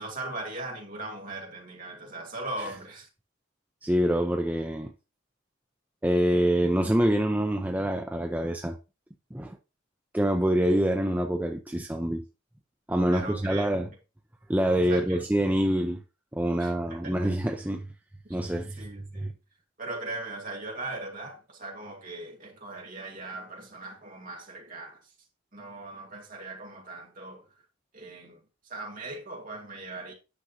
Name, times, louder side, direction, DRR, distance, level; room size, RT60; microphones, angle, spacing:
voice 1, 0.0-3.1 13.1-13.7 14.9-15.2 16.6-17.3 18.2-18.4 18.8-19.4 19.8-25.0 25.5-27.5 27.9-28.4 28.6-30.1, right 2 dB, 40° right, 2.3 m, -39 dB
voice 2, 3.8-4.9 6.0-8.8 9.3-9.6 10.1-12.2 12.9-13.9 14.5-16.0 16.3-17.9 18.3-18.9 19.2-19.3, equal, 10° right, 0.5 m, -26 dB
10.0 x 6.3 x 2.7 m
head